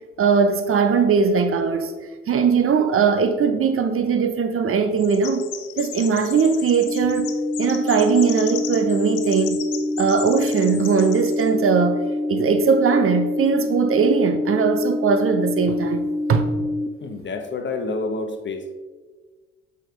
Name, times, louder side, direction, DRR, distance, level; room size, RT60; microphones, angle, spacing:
voice 1, 0.2-1.9 2.3-5.4 5.8-7.3 7.6-9.6 10.0-12.0 12.3-16.5, right 5 dB, 45° right, 8 dB, 0.9 m, -20 dB
Chirp tweet, 5.0-11.5, left 11 dB, 75° left, 0.8 m, -36 dB
sound 1, 6.9-16.9, left 2 dB, 10° right, 0.4 m, -26 dB
voice 2, 17.0-18.7, left 3 dB, 35° left, 6 dB, 1.2 m, -28 dB
7.8 x 5.3 x 3.9 m, 1.3 s
hypercardioid pair, 65°, 31 cm